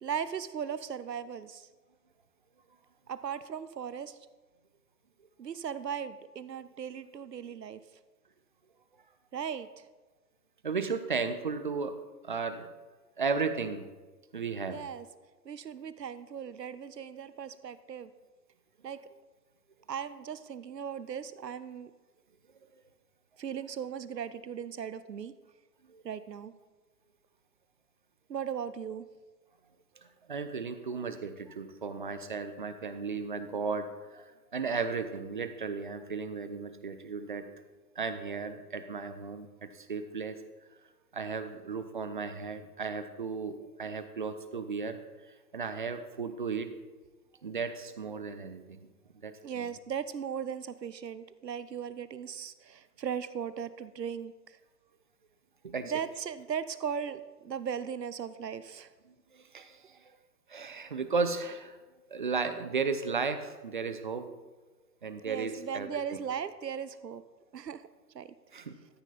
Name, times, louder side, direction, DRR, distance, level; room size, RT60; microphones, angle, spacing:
voice 1, 0.0-1.7 3.1-4.2 5.4-7.8 9.3-9.7 14.7-15.1 15.4-18.1 18.8-19.0 19.9-21.9 23.4-25.3 26.0-26.5 28.3-29.0 49.4-54.6 55.8-58.9 65.2-67.2 67.5-67.8 68.1-68.3, right 8 dB, 80° right, 15 dB, 0.7 m, -37 dB
voice 2, 10.6-11.9 12.2-12.7 13.2-13.8 14.3-14.8 25.9-26.0 30.3-33.9 34.1-34.2 34.5-37.4 38.0-39.5 39.9-40.3 41.1-45.0 45.5-46.7 47.4-48.6 49.2-49.3 49.6-49.7 55.6-55.9 59.5-59.7 60.5-61.7 62.1-64.3 65.0-65.9 68.5-68.7, right 5 dB, 35° right, 10 dB, 0.4 m, -34 dB
13.5 x 5.9 x 4.0 m, 1.3 s
figure-of-eight pair, 120°, 49 cm